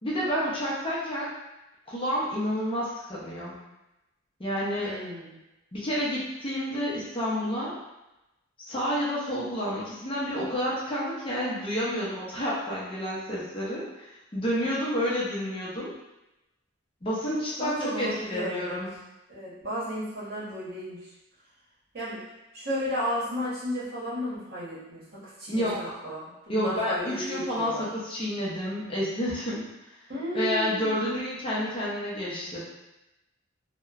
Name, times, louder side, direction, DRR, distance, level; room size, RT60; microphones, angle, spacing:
voice 1, 0.0-1.3 1.9-3.5 4.4-4.9 5.7-7.7 8.6-15.9 17.0-18.9 25.5-25.8 26.5-29.7 30.3-32.6, equal, 25° left, -6 dB, 0.6 m, -29 dB
voice 2, 4.8-5.4 17.6-18.8 19.3-21.0 21.9-22.2 22.5-27.9 30.1-31.0, equal, 55° right, -9 dB, 0.9 m, -33 dB
2.8 x 2.1 x 2.3 m, 0.97 s
head